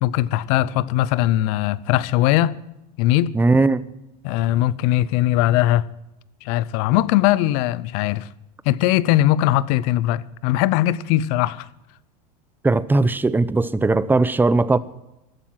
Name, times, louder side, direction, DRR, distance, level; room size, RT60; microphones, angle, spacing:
voice 1, 0.0-2.5 3.0-3.4 4.2-5.9 6.4-8.3 8.7-11.6, left 14 dB, 65° left, 0.7 m, -20 dB
voice 2, 3.3-3.8 12.6-14.8, right 3 dB, 10° right, 0.7 m, -18 dB
15.0 x 12.0 x 5.9 m
supercardioid pair, 110°, 21 cm